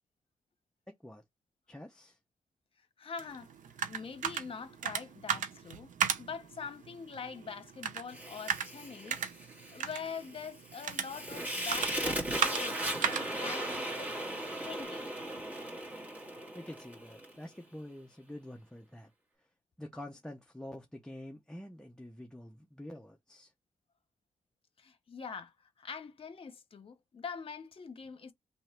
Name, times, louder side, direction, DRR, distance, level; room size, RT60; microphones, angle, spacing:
voice 1, 1.7-2.2 16.5-19.1 19.4-19.5 19.8-23.5, left 1 dB, 5° left, 0.6 m, -47 dB
voice 2, 3.0-3.5 3.9-5.9 6.2-9.2 9.7-14.2 14.6-15.1 24.8-28.3, left 6 dB, 45° left, 0.9 m, -44 dB
sound 1, 3.2-14.8, right 8 dB, 85° right, 0.6 m, -38 dB
Fire, 8.1-17.3, right 1 dB, 10° right, 1.8 m, -38 dB
3.1 x 2.9 x 4.4 m
wide cardioid pair, 110°, 13 cm